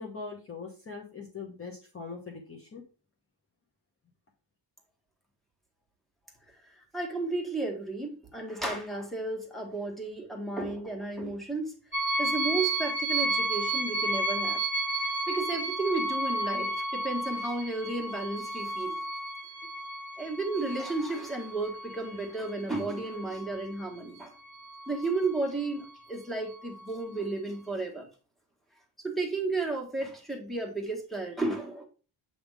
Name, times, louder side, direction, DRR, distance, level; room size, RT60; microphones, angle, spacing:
voice 1, 0.0-2.8, left 4 dB, 30° left, 0 dB, 1.1 m, -41 dB
voice 2, 6.9-11.7 12.2-14.6 15.0-19.0 20.2-24.3 24.9-28.1 29.0-31.9, right 2 dB, ahead, 1 dB, 1.7 m, -33 dB
sound 1, 11.9-23.9 24.4-25.3, right 2 dB, 30° right, 1.3 m, -32 dB
7.9 x 3.6 x 4.8 m, 0.36 s
wide cardioid pair, 140°, 43 cm